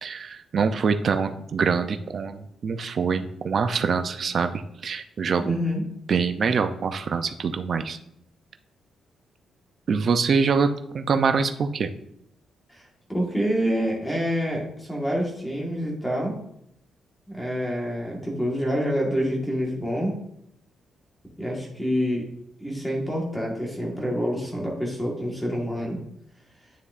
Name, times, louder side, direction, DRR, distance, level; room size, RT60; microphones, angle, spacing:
voice 1, 0.0-5.6 6.1-8.0 9.9-11.9, right 5 dB, 40° right, 8 dB, 0.5 m, -24 dB
voice 2, 5.4-5.8 12.7-16.4 17.3-20.1 21.4-22.2 22.6-26.0, equal, 10° left, -2 dB, 1.4 m, -27 dB
9.3 x 6.9 x 2.5 m, 0.77 s
wide cardioid pair, 170°, 0 cm